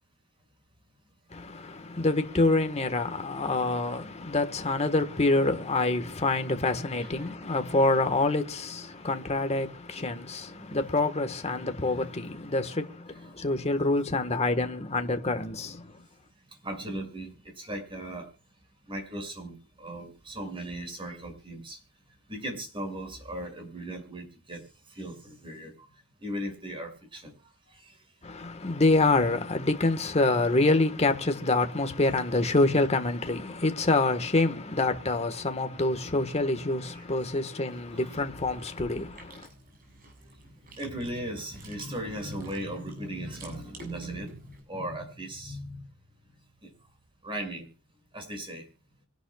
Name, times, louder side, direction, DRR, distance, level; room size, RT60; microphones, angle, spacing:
voice 1, 1.3-15.9 28.2-39.5, left 2 dB, 30° left, 1.5 m, -26 dB
voice 2, 7.0-7.3 10.0-10.1 10.5-10.8 12.0-12.1 16.6-18.3 18.9-21.8 22.3-24.6 24.9-25.9 26.2-27.3 27.7-28.0 36.9-37.2 37.9-38.1 40.8-45.8 46.6-46.7 47.2-47.7 48.1-48.7, right 1 dB, 25° right, 6.5 m, -38 dB
Chewing mastication, 37.7-44.6, right 2 dB, 45° right, 7.3 m, -51 dB
26.0 x 11.0 x 2.4 m
head